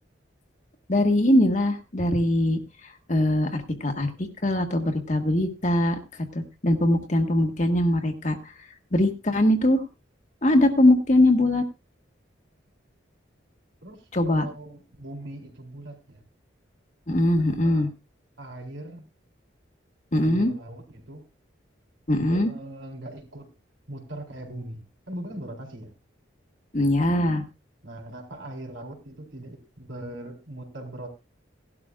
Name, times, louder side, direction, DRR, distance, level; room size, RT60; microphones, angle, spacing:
voice 1, 0.9-2.6 3.1-6.0 6.3-8.4 8.9-9.8 10.4-11.6 14.1-14.5 17.1-17.9 20.1-20.5 22.1-22.5 26.7-27.4, left 1 dB, 40° left, 4 dB, 1.5 m, -21 dB
voice 2, 13.8-16.2 17.3-17.8 18.4-19.1 20.2-21.3 22.1-23.5 23.9-25.9 27.8-31.1, right 1 dB, 85° right, 2 dB, 4.0 m, -40 dB
18.0 x 12.0 x 2.4 m, 0.26 s
head